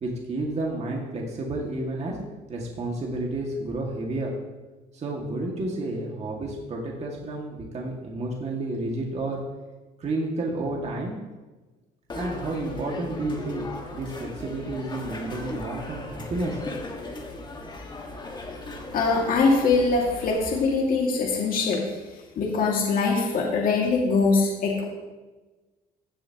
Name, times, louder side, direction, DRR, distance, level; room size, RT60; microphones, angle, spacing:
voice 1, 0.0-2.2 2.5-4.3 4.9-9.4 10.0-11.2 12.1-13.7 13.9-16.6, right 2 dB, 40° right, -2 dB, 2.0 m, -31 dB
sound 1, 12.1-20.7, left 2 dB, 25° left, 1.6 m, -37 dB
voice 2, 18.9-22.0 22.4-24.8, left 4 dB, 55° left, -2 dB, 2.1 m, -22 dB
16.0 x 7.0 x 2.9 m, 1.2 s
cardioid pair, 110°, 17 cm